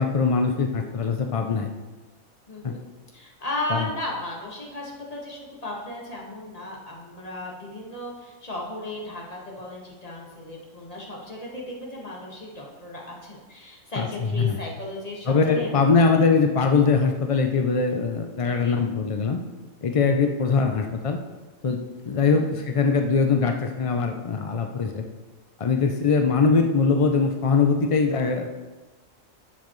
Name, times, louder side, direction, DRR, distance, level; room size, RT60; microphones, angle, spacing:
voice 1, 0.0-1.7 2.6-2.7 3.7-3.9 14.0-14.1 14.3-14.6 15.3-19.4 19.8-21.2 21.6-21.8 22.1-25.0 25.6-28.5, left 4 dB, 50° left, 4 dB, 0.4 m, -22 dB
voice 2, 2.5-2.8 3.1-15.7 15.9-16.0 18.4-18.8 22.3-22.6, left 1 dB, 30° left, -3 dB, 1.8 m, -35 dB
11.0 x 7.4 x 3.1 m, 1.2 s
omnidirectional pair, 1.4 m